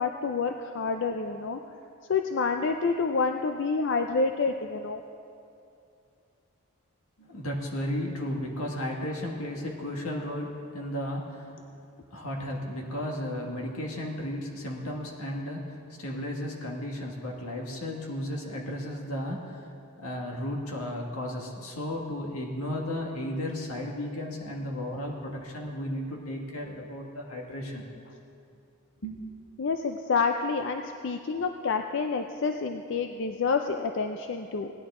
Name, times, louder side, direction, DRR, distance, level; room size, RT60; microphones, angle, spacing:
voice 1, 0.0-1.6 2.1-5.0 29.6-34.7, left 4 dB, 55° left, 6 dB, 0.4 m, -28 dB
voice 2, 7.2-11.7 12.1-19.7 20.0-27.8 29.0-29.2, left 1 dB, 85° left, -1 dB, 1.8 m, -34 dB
17.5 x 11.0 x 3.7 m, 2.6 s
head